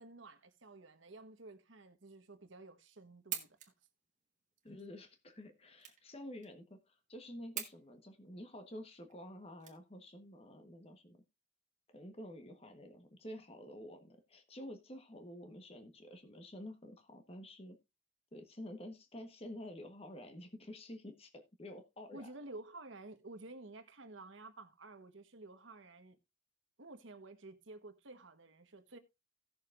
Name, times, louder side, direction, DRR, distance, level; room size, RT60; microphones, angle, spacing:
voice 1, 0.0-3.6 22.1-26.2 26.8-29.0, right 2 dB, 75° right, 1.2 m, -52 dB
sound 1, 3.1-10.3, right 10 dB, 40° right, 1.5 m, -48 dB
voice 2, 4.6-11.2 11.9-17.8 18.3-22.3, left 1 dB, 30° left, 1.2 m, -50 dB
17.5 x 6.6 x 2.5 m
head